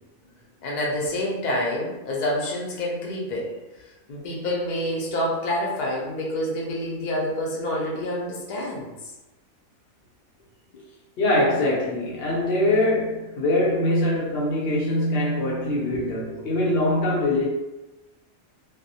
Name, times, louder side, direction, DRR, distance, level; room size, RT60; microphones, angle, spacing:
voice 1, 0.6-3.5 4.1-8.9 10.7-10.8 15.9-16.4, left 1 dB, 80° left, -3 dB, 0.4 m, -28 dB
voice 2, 11.2-17.4, left 1 dB, 55° left, -4 dB, 0.8 m, -23 dB
2.3 x 2.1 x 2.6 m, 1.0 s
omnidirectional pair, 1.4 m